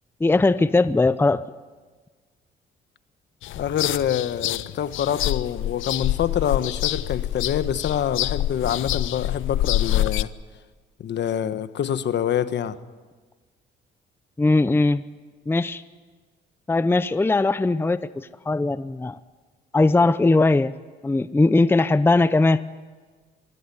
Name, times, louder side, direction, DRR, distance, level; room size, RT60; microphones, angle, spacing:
voice 1, 0.2-1.4 14.4-15.0 15.5-15.8 16.7-19.2 19.7-20.7 21.0-22.6, left 2 dB, 10° left, 15 dB, 0.6 m, -19 dB
sound 1, 3.4-10.2, left 14 dB, 80° left, 0.7 m, -26 dB
voice 2, 3.6-10.3 11.0-12.8, left 9 dB, 65° left, 12 dB, 1.3 m, -26 dB
23.5 x 16.0 x 9.9 m, 1.4 s
cardioid pair, 90°, 20 cm